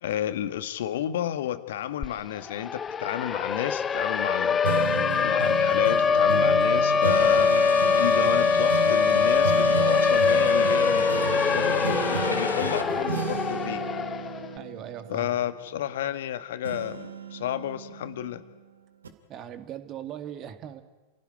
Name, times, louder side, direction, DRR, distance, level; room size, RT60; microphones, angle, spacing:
voice 1, 0.0-4.6 5.2-7.5 7.9-13.8 15.1-18.4, left 11 dB, 55° left, 12 dB, 1.5 m, -31 dB
Siren, 2.0-2.1 2.4-14.5, left 6 dB, 20° left, 0.8 m, -23 dB
sound 1, 4.6-16.3 16.6-18.5 19.0-19.1, right 6 dB, 70° right, 2.4 m, -33 dB
sound 2, 7.0-12.8, left 3 dB, 80° left, 1.7 m, -35 dB
voice 2, 14.5-15.3 19.3-20.8, right 10 dB, 35° right, 9 dB, 2.2 m, -39 dB
29.0 x 16.5 x 9.4 m, 1.2 s
figure-of-eight pair, 90°, 0 cm